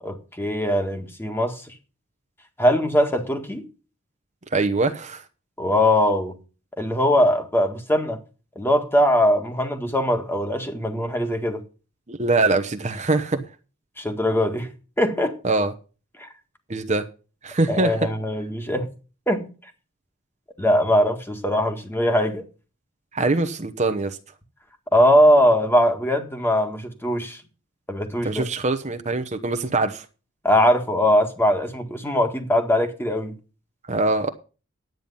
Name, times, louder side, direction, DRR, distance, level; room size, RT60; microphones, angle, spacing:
voice 1, 0.0-1.7 2.6-3.6 5.6-6.4 6.8-8.2 8.6-11.6 14.0-14.7 15.0-15.4 16.2-16.3 17.7-18.9 19.3-19.5 20.6-22.4 24.9-27.4 27.9-28.5 30.4-33.4, equal, 10° left, 1.7 m, -21 dB
voice 2, 4.5-5.2 12.1-13.4 15.4-15.7 16.7-17.1 17.4-17.9 23.1-24.2 28.2-30.0 33.9-34.3, right 3 dB, 35° right, 0.9 m, -23 dB
10.5 x 9.0 x 5.5 m
head